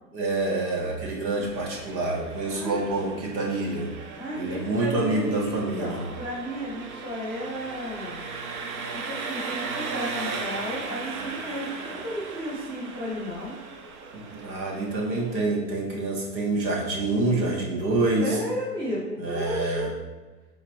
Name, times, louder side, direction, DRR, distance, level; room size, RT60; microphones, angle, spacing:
voice 1, 0.1-3.9 4.4-6.0 14.1-18.4 19.2-19.9, right 2 dB, 85° right, -1 dB, 1.2 m, -27 dB
Engine, 1.4-15.4, right 4 dB, 60° right, 0.7 m, -37 dB
voice 2, 2.5-2.9 4.2-8.2 8.9-13.6 18.2-19.9, equal, 10° right, -5 dB, 0.6 m, -33 dB
3.8 x 3.4 x 3.1 m, 1.2 s
hypercardioid pair, 130°, 50 cm